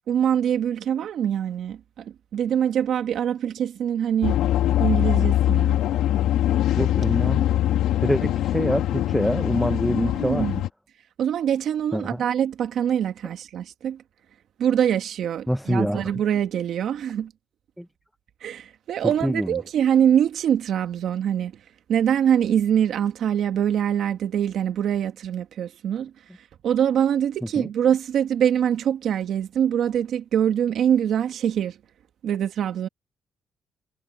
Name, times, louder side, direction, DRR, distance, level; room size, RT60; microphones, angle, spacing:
voice 1, 0.1-4.4 4.8-5.8 10.1-10.6 11.2-14.0 14.6-17.3 18.4-21.5 21.9-26.1 26.4-31.8 32.2-32.9, right 9 dB, 70° right, 1.9 m, -24 dB
sound 1, 4.2-10.7, left 12 dB, 85° left, 3.2 m, -22 dB
voice 2, 6.8-7.5 8.0-10.5 11.9-12.2 15.5-16.0 17.8-17.9 19.2-19.5 27.6-27.7, equal, ahead, 1.3 m, -25 dB
cardioid pair, 90°, 0 cm